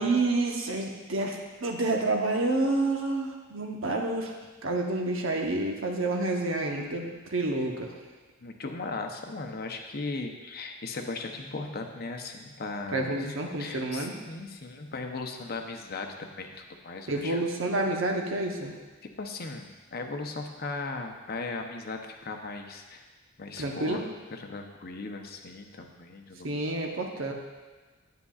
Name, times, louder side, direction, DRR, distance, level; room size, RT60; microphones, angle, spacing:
voice 1, 0.0-4.3 4.6-7.9 12.9-14.2 17.1-18.7 23.6-24.1 26.4-27.3, right 2 dB, 75° right, 1 dB, 0.9 m, -29 dB
voice 2, 8.4-17.4 19.2-23.0 23.4-24.0 24.3-26.8, left 3 dB, 50° left, 4 dB, 0.7 m, -37 dB
9.6 x 9.1 x 2.4 m, 1.3 s
head